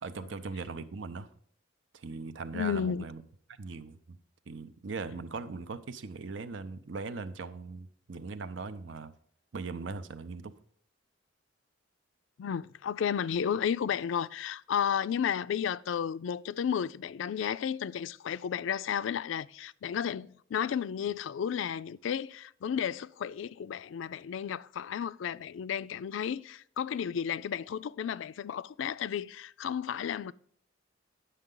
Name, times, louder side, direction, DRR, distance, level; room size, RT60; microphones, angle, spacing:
voice 1, 0.0-1.3 1.9-3.2 3.6-4.2 4.5-9.1 9.5-10.5, right 4 dB, 75° right, 0.6 m, -39 dB
voice 2, 2.5-3.0 12.4-30.3, left 8 dB, 80° left, 0.3 m, -33 dB
9.1 x 6.6 x 3.8 m
head